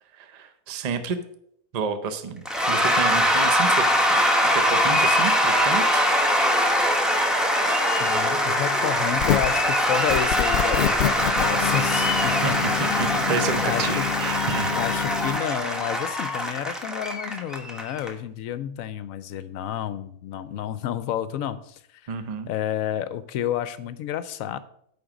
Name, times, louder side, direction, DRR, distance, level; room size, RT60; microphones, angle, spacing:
voice 1, 0.1-1.2 1.7-3.9 4.4-6.0 12.4-14.8 22.1-22.5, right 5 dB, 60° right, 9 dB, 0.4 m, -30 dB
Cheering / Applause / Crowd, 2.5-18.1, equal, ahead, 0.6 m, -22 dB
voice 2, 8.0-14.1 14.7-22.1 22.5-24.6, left 10 dB, 70° left, 14 dB, 0.9 m, -30 dB
sound 1, 9.2-9.6 10.1-15.4, left 10 dB, 90° left, 0.5 m, -28 dB
8.8 x 3.9 x 6.0 m, 0.70 s
omnidirectional pair, 1.6 m